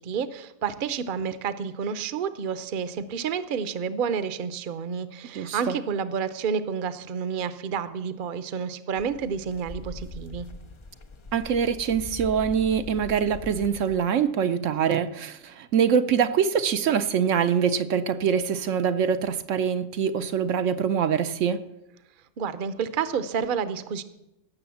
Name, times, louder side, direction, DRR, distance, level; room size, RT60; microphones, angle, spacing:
voice 1, 0.0-10.5 22.4-24.0, right 6 dB, 50° right, 13 dB, 0.8 m, -30 dB
voice 2, 5.3-5.8 11.3-21.6, right 7 dB, 75° right, 10 dB, 1.0 m, -24 dB
sound 1, 9.0-14.0, left 2 dB, 45° left, 0.4 m, -41 dB
16.5 x 6.9 x 7.0 m, 0.90 s
omnidirectional pair, 1.4 m